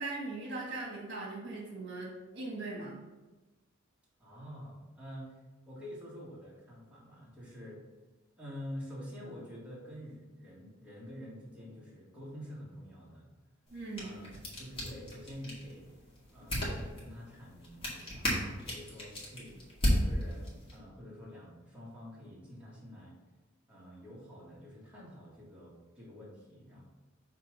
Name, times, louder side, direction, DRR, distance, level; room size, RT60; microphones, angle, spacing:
voice 1, 0.0-3.0 13.7-14.1, right 2 dB, 60° right, -2 dB, 1.6 m, -40 dB
voice 2, 4.2-5.4 5.7-7.8 8.4-13.3 14.0-14.3 14.6-15.9 16.3-19.6 19.9-23.1 23.7-26.8, equal, 5° right, -7 dB, 1.8 m, -47 dB
sound 1, 13.7-20.8, equal, 30° left, 1.9 m, -36 dB
5.7 x 4.0 x 5.0 m, 1.2 s
head